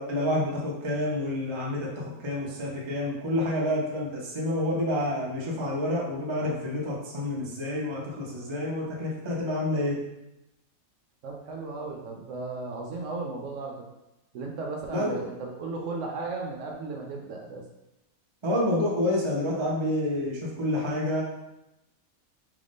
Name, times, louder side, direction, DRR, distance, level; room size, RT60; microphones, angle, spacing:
voice 1, 0.0-10.0 14.9-15.2 18.4-21.2, left 1 dB, 45° right, -3 dB, 0.3 m, -28 dB
voice 2, 11.2-13.8 14.3-17.6, right 3 dB, 65° right, 0 dB, 0.8 m, -35 dB
3.4 x 2.5 x 3.5 m, 0.92 s
omnidirectional pair, 1.6 m